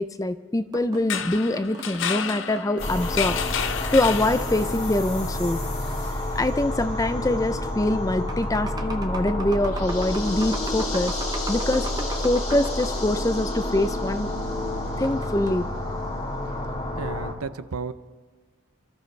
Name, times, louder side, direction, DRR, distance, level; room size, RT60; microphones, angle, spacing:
voice 1, 0.0-5.6 6.4-11.1 11.5-11.9 12.2-14.3 15.0-15.6, left 1 dB, 15° left, 12 dB, 0.4 m, -24 dB
sound 1, 0.7-4.4 5.9-6.8 7.5-7.7 8.1-13.2 14.9-15.6, right 2 dB, 20° right, 0.9 m, -39 dB
sound 2, 1.0-4.8, left 8 dB, 55° left, 0.7 m, -31 dB
sound 3, 2.8-17.3, left 1 dB, 35° left, 2.3 m, -29 dB
voice 2, 17.0-17.9, right 5 dB, 85° right, 13 dB, 0.6 m, -33 dB
29.0 x 13.5 x 3.3 m, 1.4 s
head